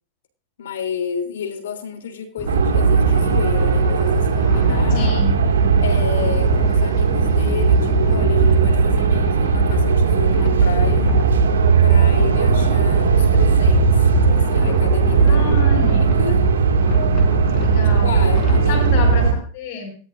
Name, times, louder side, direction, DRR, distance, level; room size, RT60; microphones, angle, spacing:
voice 1, 0.6-5.1 5.8-11.2 11.8-15.5 15.8-16.4 18.0-19.2, left 6 dB, 85° left, 6 dB, 3.3 m, -31 dB
sound 1, 2.4-18.8, left 5 dB, 45° left, 4.5 m, -30 dB
sound 2, 2.5-19.3, right 5 dB, 90° right, 2.1 m, -17 dB
voice 2, 4.9-5.4 15.2-16.1 17.5-18.2 18.7-19.9, left 4 dB, 60° left, 4 dB, 6.9 m, -29 dB
18.0 x 13.0 x 2.6 m, 0.40 s
hypercardioid pair, 110°, 0 cm